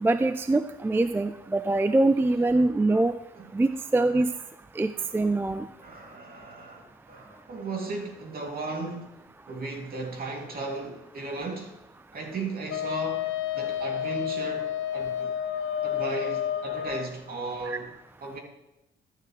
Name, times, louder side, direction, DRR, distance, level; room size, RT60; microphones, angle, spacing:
voice 1, 0.0-3.1 3.5-4.3 4.8-5.7 17.7-17.8, right 2 dB, 10° right, 0.3 m, -24 dB
voice 2, 5.8-9.2 9.5-11.8 12.1-15.3 15.8-17.9 18.2-18.4, right 3 dB, 50° right, 2.7 m, -36 dB
Wind instrument woodwind instrument, 12.7-17.1, left 10 dB, 80° left, 0.8 m, -30 dB
13.0 x 9.1 x 3.2 m
cardioid pair, 90°, 20 cm